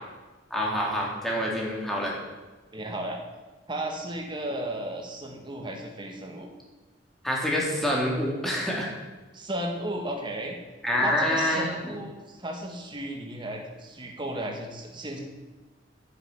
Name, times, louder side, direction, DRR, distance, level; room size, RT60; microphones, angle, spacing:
voice 1, 0.5-2.1 7.2-8.9 10.8-11.8, left 1 dB, ahead, -4 dB, 3.6 m, -26 dB
voice 2, 2.7-3.2 3.7-6.5 9.3-10.6 11.0-15.2, right 1 dB, 25° right, 1 dB, 1.8 m, -34 dB
12.0 x 7.8 x 9.7 m, 1.2 s
head